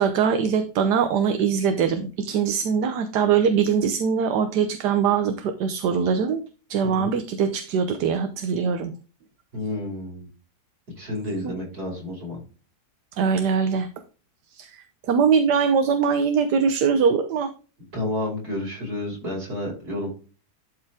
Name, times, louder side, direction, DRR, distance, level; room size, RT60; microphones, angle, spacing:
voice 1, 0.0-6.4 6.7-8.9 11.4-11.5 13.1-13.9 14.5-17.5, right 6 dB, 85° right, 8 dB, 1.4 m, -22 dB
voice 2, 9.5-10.3 11.0-12.4 17.9-20.1, left 2 dB, 70° right, -3 dB, 5.9 m, -30 dB
12.0 x 4.8 x 3.5 m, 0.35 s
omnidirectional pair, 1.7 m